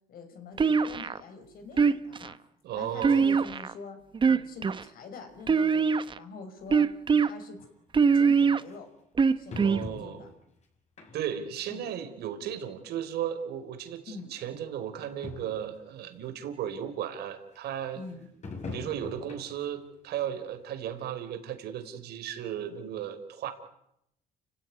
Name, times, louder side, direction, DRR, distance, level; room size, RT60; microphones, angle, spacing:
voice 1, 0.1-2.4 2.7-4.0 4.3-6.9 7.2-7.6 8.1-8.9 9.4-10.3 11.7-11.9 14.1-14.3 17.9-18.3, left 4 dB, 60° left, 7 dB, 5.8 m, -45 dB
sound 1, 0.6-1.2 1.8-2.3 3.0-3.7 4.1-4.8 5.5-6.2 6.7-7.3 7.9-8.6 9.2-9.8, right 5 dB, 30° right, 1.0 m, -22 dB
voice 2, 2.6-3.2 9.5-10.2 11.1-18.0 18.7-23.5, right 9 dB, 75° right, 8 dB, 4.2 m, -35 dB
sound 2, 7.6-7.7 8.7-8.8 9.5-10.4 11.0-11.5 11.9-12.0 13.0-13.1 13.2-13.3 14.2-14.3 14.6-14.7 14.9-15.0 15.2-15.7 16.2-16.3 18.4-19.7 20.1-20.3 20.8-20.9, left 3 dB, 40° left, 6.7 m, -42 dB
30.0 x 16.0 x 9.5 m, 0.79 s
cardioid pair, 110°, 17 cm